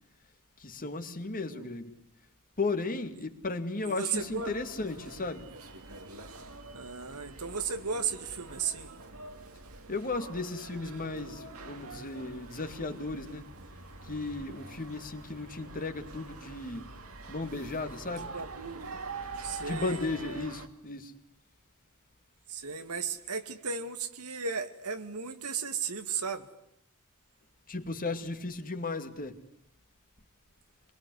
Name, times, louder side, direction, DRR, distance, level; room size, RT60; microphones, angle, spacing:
voice 1, 0.6-1.9 2.6-5.5 9.9-13.5 14.0-16.9 17.3-18.3 19.6-21.1 27.7-29.4, left 3 dB, 40° left, 2.3 m, -35 dB
voice 2, 3.9-4.5 6.7-8.9 18.3-19.0 19.4-20.0 22.5-26.5, right 5 dB, 85° right, 2.3 m, -35 dB
sound 1, 4.1-20.7, right 3 dB, 70° right, 2.6 m, -45 dB
26.0 x 21.5 x 9.6 m
head